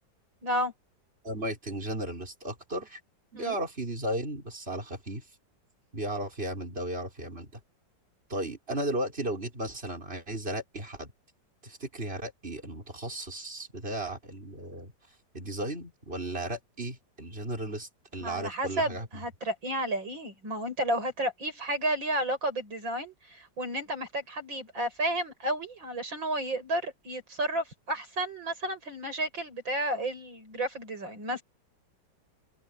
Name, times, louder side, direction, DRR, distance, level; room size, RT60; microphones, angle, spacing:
voice 1, 0.4-0.7 3.3-3.6 18.2-31.4, right 1 dB, 85° right, 8.3 m, -32 dB
voice 2, 1.2-3.0 3.3-5.2 5.9-7.5 8.3-11.1 11.6-14.9 15.3-19.1, right 1 dB, 30° right, 6.5 m, -35 dB
open air
omnidirectional pair, 2.0 m